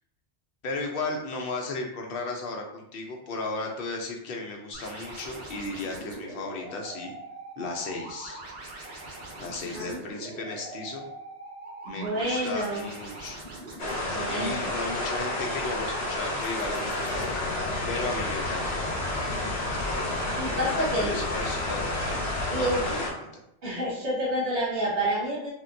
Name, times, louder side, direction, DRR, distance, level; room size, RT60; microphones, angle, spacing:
voice 1, 0.6-7.1 7.6-8.4 9.4-11.1 11.9-13.4 13.8-17.1 17.9-18.7 19.4-19.5 20.9-21.9 22.5-22.9 23.2-23.3, left 3 dB, 60° left, 1 dB, 0.7 m, -35 dB
sound 1, 4.7-17.3, right 2 dB, 60° right, 1.0 m, -42 dB
voice 2, 11.8-12.9 14.1-14.6 20.3-21.1 22.5-23.0 23.6-25.5, right 1 dB, 90° right, -9 dB, 1.7 m, -29 dB
sound 2, 13.8-23.1, left 1 dB, 80° left, 1.1 m, -31 dB
sound 3, 17.1-22.9, left 2 dB, 15° right, 1.0 m, -37 dB
3.4 x 2.2 x 2.5 m, 0.79 s
omnidirectional pair, 1.2 m